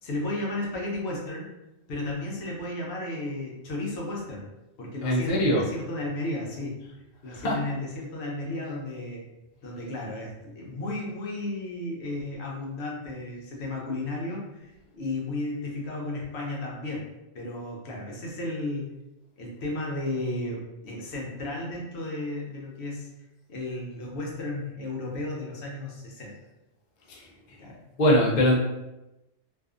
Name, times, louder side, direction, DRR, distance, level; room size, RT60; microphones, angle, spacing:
voice 1, 0.0-1.5 1.9-4.5 4.8-6.8 7.2-9.2 9.6-17.1 17.3-18.9 19.4-23.1 23.5-26.4 27.6-27.8, left 2 dB, 70° left, -2 dB, 0.9 m, -33 dB
voice 2, 5.0-5.7 7.3-7.6 27.1-27.3 28.0-28.6, equal, 50° left, -2 dB, 0.6 m, -22 dB
2.6 x 2.4 x 2.4 m, 0.96 s
omnidirectional pair, 1.2 m